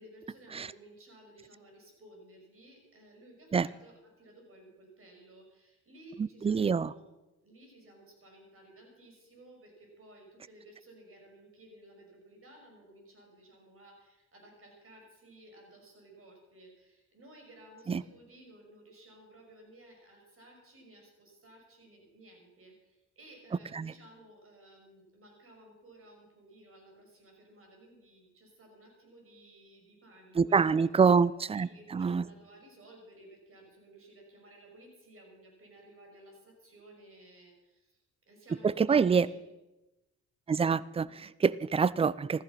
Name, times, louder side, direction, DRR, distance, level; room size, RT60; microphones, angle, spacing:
voice 1, 0.0-7.1 7.4-30.6 31.5-39.5, right 1 dB, 45° right, 1 dB, 6.1 m, -56 dB
voice 2, 6.4-6.9 17.9-18.0 23.7-23.9 30.4-32.2 38.6-39.3 40.5-42.4, right 5 dB, 20° right, 20 dB, 0.4 m, -26 dB
14.5 x 13.5 x 5.8 m, 1.0 s
cardioid pair, 90°, 30 cm